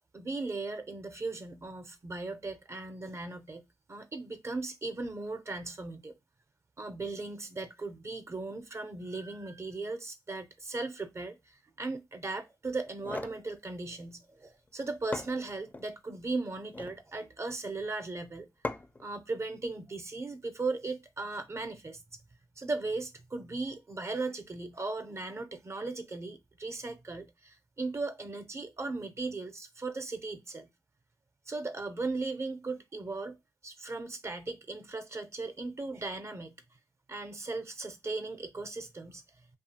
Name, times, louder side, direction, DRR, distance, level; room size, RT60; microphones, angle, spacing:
voice 1, 0.1-6.1 6.8-18.5 19.0-22.0 22.6-30.7 31.5-33.3 33.6-36.5 37.1-39.2, right 3 dB, 40° right, 0.5 m, -37 dB
sound 1, 12.8-13.4 14.7-14.8 15.1-15.9 16.6-17.0 18.6-19.1, left 2 dB, 20° left, 0.4 m, -38 dB
2.7 x 2.3 x 2.7 m
cardioid pair, 75°, 8 cm